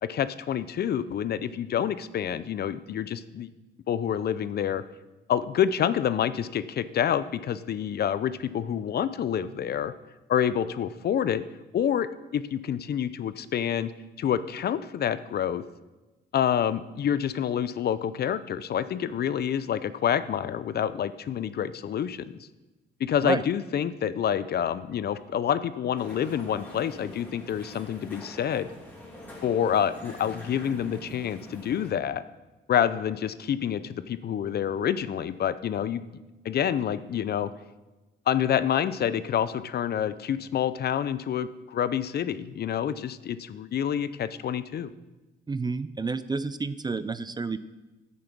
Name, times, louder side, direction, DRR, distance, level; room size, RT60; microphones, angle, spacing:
voice 1, 0.0-3.5 3.9-4.8 5.3-9.9 10.3-11.4 11.7-13.9 14.2-15.6 16.3-22.3 23.0-28.7 29.4-32.2 32.7-36.0 36.4-37.5 38.3-44.9, left 9 dB, 55° left, 14 dB, 0.5 m, -27 dB
sound 1, 26.0-31.9, equal, 10° left, 2.8 m, -45 dB
voice 2, 45.5-47.6, right 4 dB, 20° right, 14 dB, 0.5 m, -30 dB
9.0 x 8.6 x 6.1 m, 1.1 s
cardioid pair, 90°, 20 cm